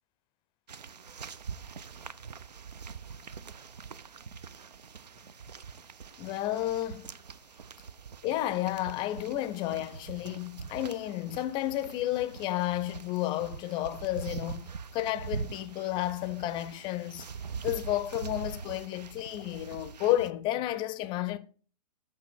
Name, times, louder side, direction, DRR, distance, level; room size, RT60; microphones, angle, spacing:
sound 1, 0.7-20.3, right 6 dB, 80° right, 0.5 m, -43 dB
voice 1, 6.2-7.1 8.2-17.3 17.6-21.4, left 14 dB, 25° left, 0.5 m, -32 dB
8.5 x 5.8 x 4.3 m
figure-of-eight pair, 115°, 21 cm